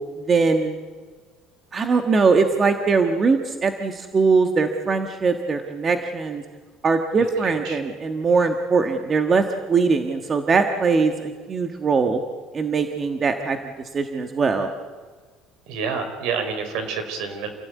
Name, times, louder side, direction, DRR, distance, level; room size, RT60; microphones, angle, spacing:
voice 1, 0.2-0.8 1.7-6.4 6.8-12.2 12.5-13.6 13.9-14.7, right 4 dB, 20° right, 6 dB, 1.4 m, -21 dB
voice 2, 7.4-7.8 15.7-17.5, right 5 dB, 65° right, 7 dB, 5.0 m, -28 dB
28.5 x 16.5 x 9.5 m, 1.5 s
cardioid pair, 170°, 0 cm